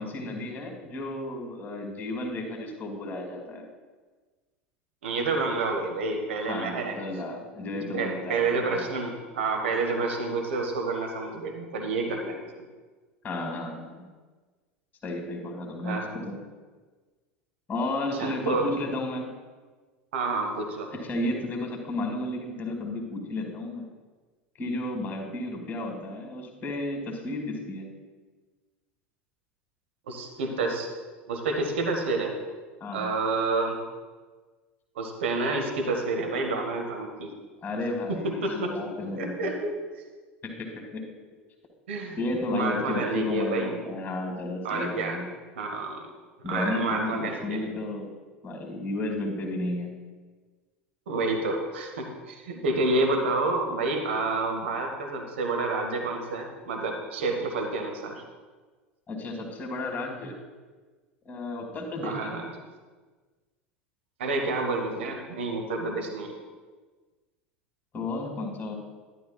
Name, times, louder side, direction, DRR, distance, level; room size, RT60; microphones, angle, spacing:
voice 1, 0.0-3.7 6.5-8.9 13.2-14.1 15.0-16.4 17.7-19.3 20.9-23.8 24.6-27.9 32.8-33.1 37.6-39.5 40.4-41.0 42.2-45.3 46.4-48.1 48.4-49.9 59.1-60.3 61.3-62.5 67.9-68.7, left 2 dB, 30° left, 2 dB, 2.0 m, -33 dB
voice 2, 5.0-7.0 7.8-12.4 15.8-16.0 18.1-18.7 20.1-20.9 30.1-30.9 31.3-32.3 32.9-33.8 34.9-37.3 38.1-38.8 39.1-39.7 41.9-42.2 42.5-43.7 44.6-45.2 45.5-46.1 46.4-47.7 51.1-58.2 62.0-62.5 64.2-66.3, right 3 dB, 70° right, 3 dB, 1.1 m, -29 dB
11.5 x 10.5 x 2.3 m, 1.4 s
figure-of-eight pair, 80°, 7 cm